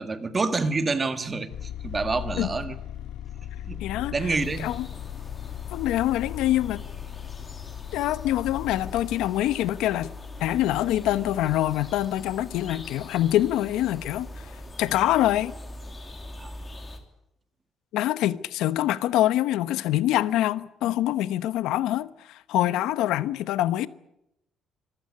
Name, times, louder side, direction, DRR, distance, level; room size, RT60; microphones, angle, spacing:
voice 1, 0.0-2.8 3.6-3.8 4.1-4.7 16.4-16.6, right 3 dB, 20° right, 1.7 m, -28 dB
sound 1, 1.5-9.1, left 10 dB, 65° left, 2.3 m, -37 dB
voice 2, 3.8-4.1 4.6-4.8 5.7-6.8 7.9-10.1 10.4-14.5 14.8-15.6 17.9-23.9, left 13 dB, 90° left, 1.0 m, -25 dB
sound 2, 4.4-17.0, left 2 dB, 20° left, 2.9 m, -42 dB
25.0 x 15.0 x 9.7 m
cardioid pair, 160°, 0 cm